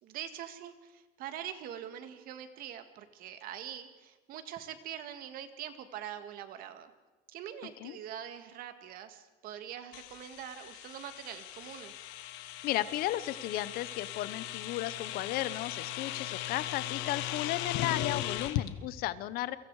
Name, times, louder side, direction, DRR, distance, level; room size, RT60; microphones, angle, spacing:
voice 1, 0.0-6.9 7.3-12.1, right 10 dB, 55° right, 9 dB, 2.0 m, -44 dB
sound 1, 9.9-18.7, left 13 dB, 80° left, 1.5 m, -38 dB
voice 2, 12.6-19.6, left 14 dB, 55° left, 16 dB, 1.0 m, -34 dB
29.5 x 24.0 x 4.9 m, 1.2 s
cardioid pair, 165°, 18 cm